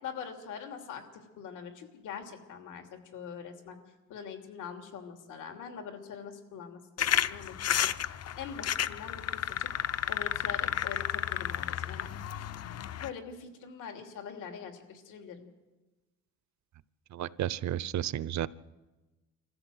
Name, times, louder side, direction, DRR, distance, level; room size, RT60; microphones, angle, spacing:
voice 1, 0.0-3.8 4.1-7.9 8.4-9.7 10.1-12.1 13.0-15.5, left 7 dB, 85° left, 5 dB, 3.1 m, -43 dB
sound 1, 7.0-13.1, left 10 dB, 55° left, 0.8 m, -32 dB
voice 2, 17.1-18.5, right 12 dB, 70° right, 19 dB, 0.8 m, -32 dB
24.5 x 14.5 x 7.9 m, 1.2 s
cardioid pair, 90°, 30 cm